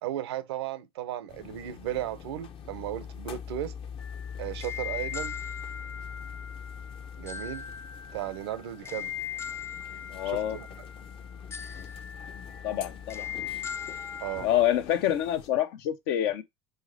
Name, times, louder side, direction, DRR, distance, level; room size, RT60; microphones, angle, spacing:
voice 1, 0.0-3.7 4.4-5.4 7.2-7.7 8.1-9.1 10.2-10.8 14.2-14.5, right 12 dB, 85° right, 0.8 m, -35 dB
sound 1, 1.3-15.5, left 7 dB, 45° left, 0.9 m, -43 dB
sound 2, 4.0-14.5, left 8 dB, 20° left, 0.5 m, -40 dB
voice 2, 10.1-10.6 12.6-13.3 14.4-16.4, left 11 dB, 70° left, 1.0 m, -27 dB
4.7 x 4.1 x 4.8 m
hypercardioid pair, 95°, 13 cm